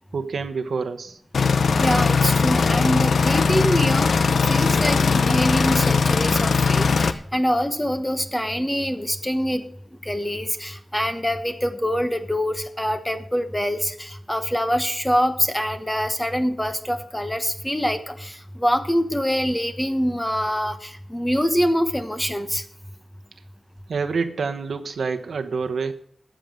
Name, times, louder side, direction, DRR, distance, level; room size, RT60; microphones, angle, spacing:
voice 1, 0.1-1.2 23.9-25.9, right 5 dB, 80° right, 8 dB, 1.1 m, -27 dB
sound 1, 1.3-7.1, left 5 dB, 75° left, 0.7 m, -19 dB
voice 2, 1.8-4.2 4.5-9.7 10.0-22.6, equal, 10° left, 9 dB, 1.2 m, -24 dB
13.0 x 7.7 x 6.4 m, 0.66 s
wide cardioid pair, 105°, 0 cm